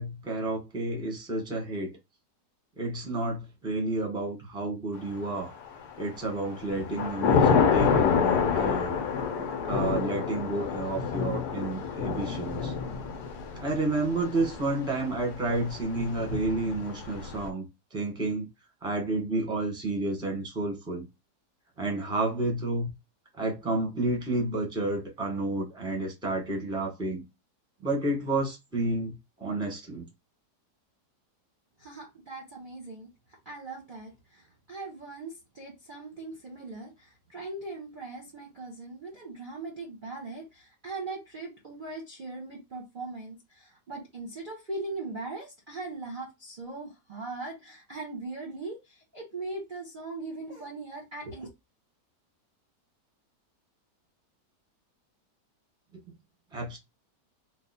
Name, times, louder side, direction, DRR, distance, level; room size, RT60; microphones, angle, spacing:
voice 1, 0.0-1.9 2.8-5.5 6.0-9.0 9.4-12.7 13.6-17.6 17.9-18.5 18.8-21.0 21.8-22.9 23.3-27.2 27.8-30.1 56.5-56.8, right 2 dB, 5° right, 1.0 m, -30 dB
Thunder / Rain, 5.4-5.9 6.4-17.5, left 6 dB, 70° left, 1.2 m, -28 dB
voice 2, 31.8-51.5, right 3 dB, 40° right, 0.9 m, -40 dB
3.2 x 2.3 x 4.1 m
omnidirectional pair, 1.8 m